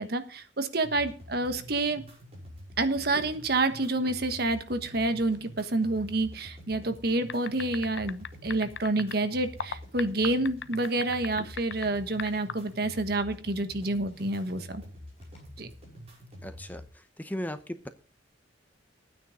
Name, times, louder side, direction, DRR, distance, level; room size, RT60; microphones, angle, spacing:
voice 1, 0.0-2.0 2.8-14.8 15.6-15.7, right 2 dB, 55° right, 9 dB, 1.3 m, -28 dB
sound 1, 0.8-16.8, equal, 35° right, 6.0 m, -47 dB
sound 2, 2.3-3.6 4.8-7.1 7.4-9.2 9.5-10.4 10.9-17.0, equal, 30° left, 7.2 m, -56 dB
sound 3, 7.3-9.1 9.6-11.9 12.2-12.5, left 7 dB, 70° left, 0.6 m, -36 dB
voice 2, 16.4-17.9, equal, 10° left, 10 dB, 0.7 m, -37 dB
13.5 x 9.4 x 5.1 m, 0.40 s
head